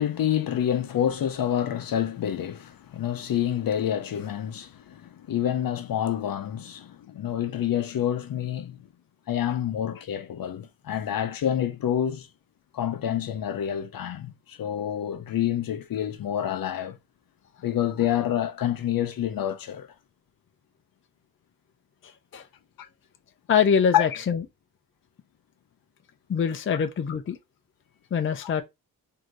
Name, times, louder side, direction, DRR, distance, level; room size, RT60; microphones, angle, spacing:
voice 1, 0.0-8.8 9.3-12.3 12.7-17.0 17.6-19.9 22.8-22.9 23.9-24.1 28.4-28.5, left 10 dB, 65° left, 0.8 m, -28 dB
voice 2, 22.0-22.5 23.5-24.4 26.3-27.4 28.1-28.6, left 7 dB, 35° left, 0.5 m, -24 dB
3.9 x 2.8 x 4.6 m
wide cardioid pair, 145°, 38 cm